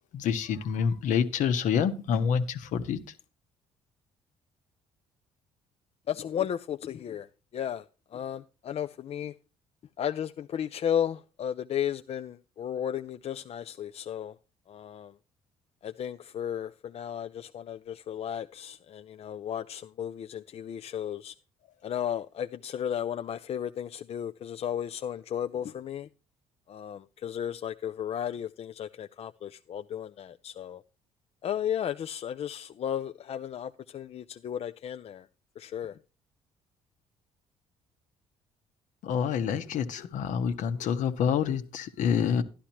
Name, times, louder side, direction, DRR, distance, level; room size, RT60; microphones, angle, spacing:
voice 1, 0.1-3.0 39.0-42.4, left 7 dB, 70° left, 1.2 m, -27 dB
voice 2, 6.1-7.3 7.5-7.8 8.1-9.3 10.0-14.3 14.7-15.1 15.8-21.3 21.8-26.1 26.7-30.8 31.4-35.3 35.6-36.0, left 9 dB, 50° left, 0.5 m, -34 dB
12.0 x 11.0 x 2.9 m
supercardioid pair, 65°, 14 cm